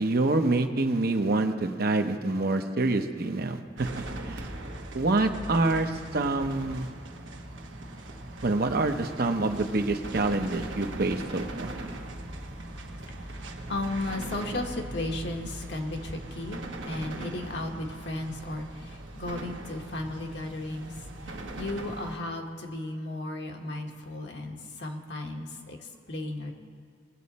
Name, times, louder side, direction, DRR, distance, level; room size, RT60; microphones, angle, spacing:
voice 1, 0.0-3.9 4.2-4.5 4.9-6.9 8.4-11.7, right 2 dB, 55° right, 6 dB, 0.8 m, -26 dB
sound 1, 3.8-22.2, right 1 dB, 85° right, 1.2 m, -40 dB
voice 2, 13.0-20.9 21.2-26.5, left 2 dB, 65° left, 2 dB, 1.4 m, -35 dB
20.5 x 7.6 x 4.2 m, 2.1 s
head